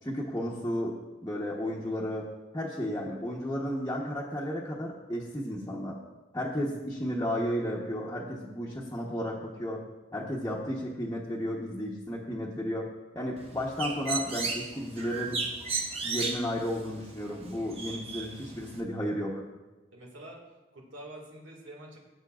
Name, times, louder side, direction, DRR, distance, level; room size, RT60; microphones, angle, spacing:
voice 1, 0.0-1.0 1.2-2.3 2.5-6.0 6.3-9.8 10.1-12.9 13.1-15.4 16.0-19.4, equal, 15° left, -6 dB, 0.9 m, -33 dB
Bird, 13.4-18.8, right 4 dB, 30° right, 1.0 m, -35 dB
voice 2, 19.9-20.4 20.7-22.0, right 1 dB, 90° right, 0 dB, 1.9 m, -46 dB
16.5 x 8.1 x 2.4 m, 1.2 s
head